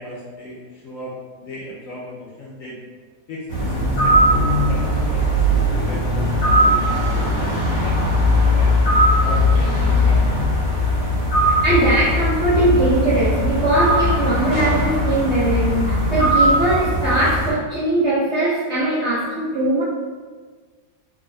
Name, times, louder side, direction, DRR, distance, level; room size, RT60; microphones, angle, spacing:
voice 1, 0.0-2.8 3.3-4.4 4.7-8.7 9.2-10.9, left 1 dB, 65° left, -6 dB, 0.8 m, -36 dB
sound 1, 3.5-17.5, equal, 90° left, 1.8 m, -19 dB
voice 2, 11.4-19.8, right 1 dB, 65° right, -8 dB, 0.6 m, -20 dB
3.5 x 2.5 x 3.1 m, 1.5 s
omnidirectional pair, 1.9 m